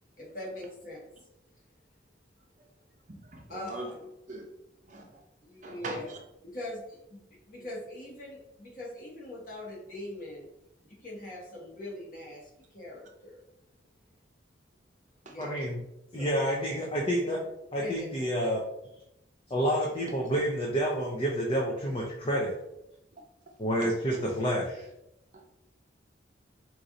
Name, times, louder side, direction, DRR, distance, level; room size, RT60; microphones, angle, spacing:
voice 1, 0.2-1.0 3.5-4.0 5.4-6.1 6.4-10.4 10.8-13.4 15.2-15.5 16.1-16.4 17.2-17.4 17.8-18.2, left 1 dB, 45° left, -4 dB, 1.4 m, -42 dB
voice 2, 3.1-3.9 4.3-4.5 4.8-5.2 5.6-6.2 15.3-15.4 23.1-23.2, right 2 dB, 40° right, 2 dB, 0.6 m, -41 dB
voice 3, 15.4-15.8 16.1-17.4 17.7-18.6 19.5-22.5 23.6-24.8, equal, 30° left, -2 dB, 0.6 m, -29 dB
4.5 x 2.5 x 3.9 m, 0.85 s
head